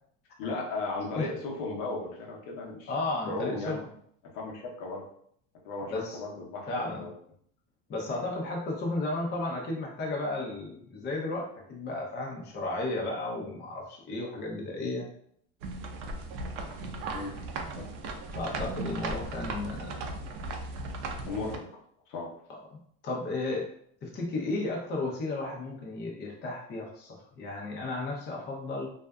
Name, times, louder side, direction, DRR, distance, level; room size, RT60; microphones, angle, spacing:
voice 1, 0.4-2.9 3.3-3.8 4.3-5.0 5.6-7.1 17.1-17.4 17.8-17.9 21.3-21.6 22.1-22.3, left 3 dB, 60° left, -1 dB, 0.8 m, -35 dB
voice 2, 2.9-3.8 5.9-6.2 6.7-7.1 7.9-15.1 18.3-20.1 23.0-23.7 24.0-28.9, left 2 dB, 30° left, -2 dB, 0.6 m, -33 dB
sound 1, 15.6-21.6, right 2 dB, 65° right, 0.6 m, -37 dB
2.5 x 2.3 x 2.2 m, 0.66 s
supercardioid pair, 100°, 37 cm